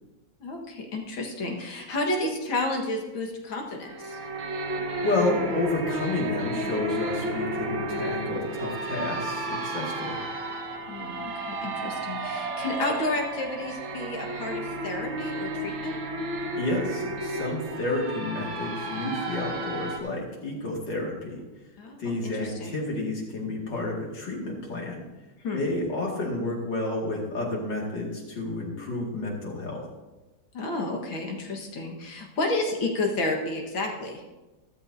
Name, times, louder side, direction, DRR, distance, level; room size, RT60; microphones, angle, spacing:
voice 1, 0.4-4.2 10.9-16.0 21.8-22.8 25.4-25.6 30.5-34.2, left 2 dB, 90° left, 1 dB, 2.4 m, -31 dB
sound 1, 3.8-20.0, right 1 dB, 80° right, 2.0 m, -32 dB
voice 2, 5.0-10.2 16.6-21.4 22.0-25.0 25.5-29.8, left 2 dB, 65° left, -2 dB, 3.0 m, -30 dB
13.5 x 13.5 x 2.8 m, 1.1 s
omnidirectional pair, 2.1 m